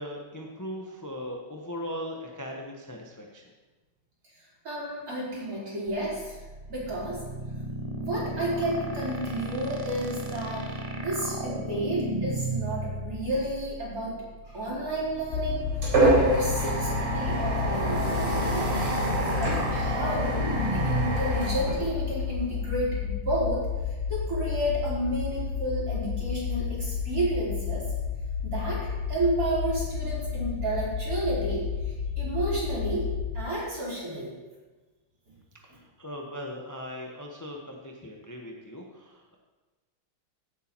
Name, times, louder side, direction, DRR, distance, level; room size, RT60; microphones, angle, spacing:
voice 1, 0.0-3.5 35.6-39.4, equal, 15° left, 0 dB, 0.6 m, -39 dB
voice 2, 4.6-6.4 6.7-7.2 7.9-18.8 19.4-20.3 20.6-27.8 28.4-33.1 33.3-34.3, right 1 dB, 40° right, -7 dB, 5.0 m, -31 dB
sound 1, 5.9-23.1, right 1 dB, 75° right, 0.3 m, -34 dB
sound 2, 15.1-22.5, right 2 dB, 90° right, 5.1 m, -28 dB
sound 3, 15.3-33.5, left 7 dB, 70° left, 1.0 m, -31 dB
16.0 x 8.4 x 4.6 m, 1.2 s
omnidirectional pair, 2.4 m